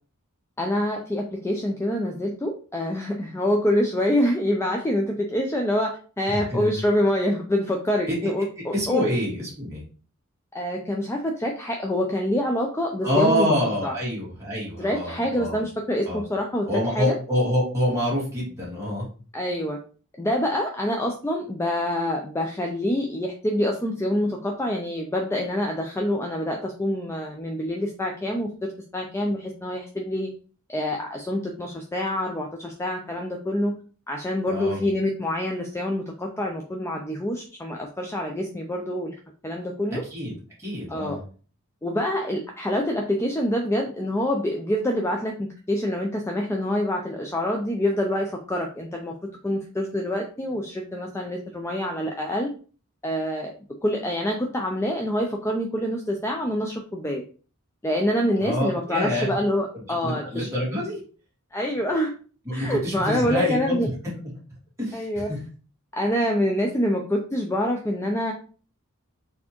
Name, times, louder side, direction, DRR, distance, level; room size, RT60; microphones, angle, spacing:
voice 1, 0.6-9.1 10.5-13.5 13.8-14.0 14.8-17.1 19.3-19.8 20.2-30.3 30.7-33.8 34.1-39.2 39.4-40.0 40.9-41.2 41.8-49.1 49.4-52.5 53.0-53.6 53.8-57.2 57.8-60.5 61.5-62.1 62.5-63.9 64.9-65.3 65.9-68.3, left 1 dB, 10° left, 1 dB, 0.4 m, -26 dB
voice 2, 6.3-6.7 8.1-8.2 8.7-9.8 13.0-15.6 16.0-16.2 16.7-19.1 34.5-34.8 40.1-40.3 40.6-41.2 58.4-59.3 60.0-61.0 62.5-63.8 64.8-65.4, left 1 dB, 15° right, -6 dB, 2.0 m, -26 dB
4.3 x 3.4 x 2.9 m, 0.39 s
head